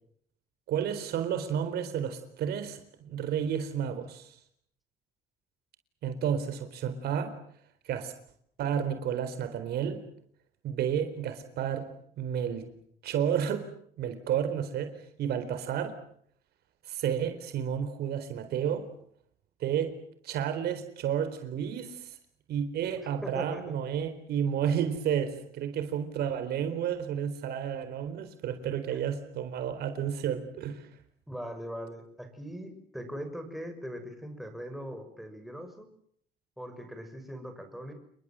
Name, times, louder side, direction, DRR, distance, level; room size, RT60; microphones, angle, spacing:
voice 1, 0.7-4.4 6.0-7.4 7.9-8.1 8.6-10.0 10.6-11.9 12.2-12.7 13.0-13.7 14.0-15.9 16.9-18.9 19.6-20.0 20.2-22.1 22.5-30.9, right 8 dB, 70° right, 4.1 m, -31 dB
voice 2, 23.0-23.7 31.3-35.9 36.6-37.9, equal, ahead, 6.4 m, -40 dB
29.5 x 21.5 x 7.7 m
cardioid pair, 110°, 17 cm